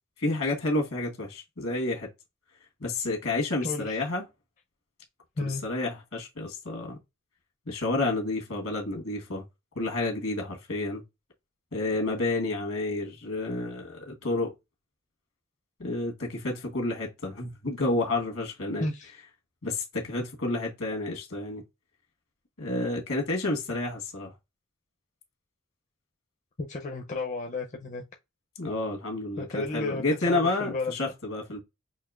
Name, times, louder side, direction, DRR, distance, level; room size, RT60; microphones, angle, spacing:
voice 1, 0.2-2.1 2.8-4.2 5.4-7.0 7.7-9.4 9.7-11.0 11.7-14.5 15.8-18.9 19.6-21.6 22.6-24.3 28.6-31.6, left 2 dB, 70° left, 1.4 m, -30 dB
voice 2, 3.6-4.0 5.4-5.6 18.8-19.1 26.6-28.0 29.4-31.1, left 2 dB, 35° left, 0.5 m, -33 dB
5.5 x 2.8 x 2.4 m
head